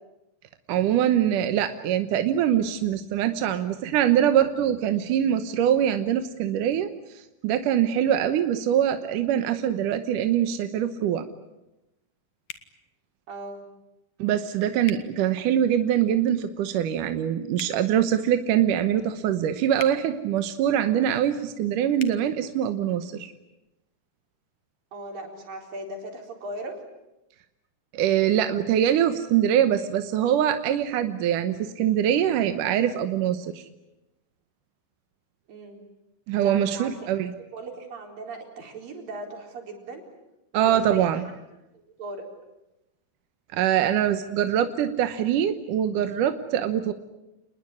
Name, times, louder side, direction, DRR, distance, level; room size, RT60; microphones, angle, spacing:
voice 1, 0.7-6.9 7.2-11.3 14.2-23.3 27.9-33.6 36.3-37.3 40.5-41.2 43.5-46.9, right 10 dB, 75° right, 9 dB, 2.6 m, -23 dB
sound 1, 12.5-12.7 14.8-15.0 17.5-17.8 19.8-20.0 22.0-22.2, left 9 dB, 70° left, 2.9 m, -39 dB
voice 2, 13.3-13.7 24.9-26.8 35.5-35.8 36.4-37.0 37.5-40.0 40.5-41.2 41.7-42.3, right 2 dB, 90° right, 2 dB, 6.0 m, -38 dB
29.0 x 20.5 x 9.8 m, 0.96 s
omnidirectional pair, 3.9 m